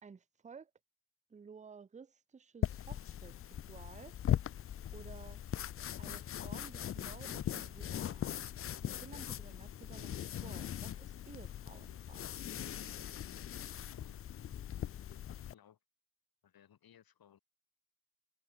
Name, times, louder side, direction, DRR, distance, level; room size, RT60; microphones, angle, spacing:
voice 1, 0.0-0.7 1.3-4.1 4.9-5.4 6.0-8.4 8.8-12.4, right 6 dB, 20° right, 0.6 m, -54 dB
sound 1, 2.6-15.5, left 10 dB, 40° left, 0.4 m, -40 dB
voice 2, 13.8-14.2 15.3-15.8 16.4-17.4, left 9 dB, 65° left, 2.8 m, -62 dB
cardioid pair, 90°, 38 cm